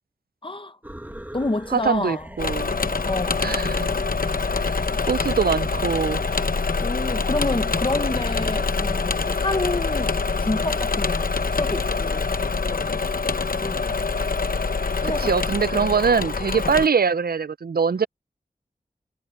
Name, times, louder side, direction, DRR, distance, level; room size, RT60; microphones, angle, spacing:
voice 1, 0.4-0.8 1.3-2.3 3.0-3.6 6.3-6.5 6.8-13.0 13.4-14.0 15.0-15.3 15.8-15.9 16.6-16.8, left 2 dB, 35° left, 1.0 m, -29 dB
sound 1, 0.8-9.0, right 1 dB, 10° right, 2.0 m, -40 dB
voice 2, 1.7-2.7 3.4-3.9 4.6-4.8 5.1-6.2 15.0-18.1, right 6 dB, 75° right, 0.5 m, -23 dB
Engine / Mechanisms, 2.4-16.9, left 4 dB, 65° left, 0.9 m, -25 dB
wide cardioid pair, 60°, 16 cm